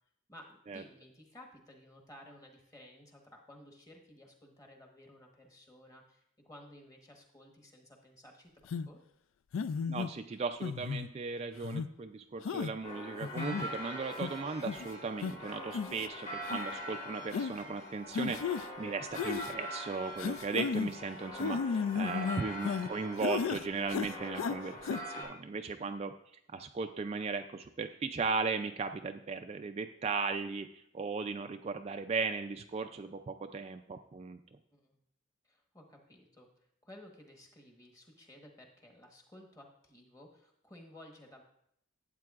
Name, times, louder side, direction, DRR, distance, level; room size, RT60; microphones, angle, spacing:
voice 1, 0.3-8.5 8.8-9.0 34.7-35.0 35.4-36.5 36.8-41.4, left 1 dB, 15° left, 1 dB, 1.2 m, -55 dB
sound 1, 8.7-8.9 9.5-10.1 10.6-11.1 11.6-11.9 12.5-12.7 13.2-13.7 14.2-14.3 14.7-14.9 15.2-15.3 15.7-16.1 16.4-16.6 17.3-17.5 18.1-18.7 19.1-19.5 20.2-20.9 21.4-22.9 23.2-23.6 23.9-24.6 24.8-25.0, left 6 dB, 70° left, 0.3 m, -34 dB
voice 2, 9.9-26.1 26.5-34.4, right 4 dB, 30° right, 6 dB, 0.3 m, -37 dB
sound 2, 12.8-25.2, equal, 40° left, 3.3 m, -43 dB
12.0 x 8.3 x 2.4 m, 0.74 s
head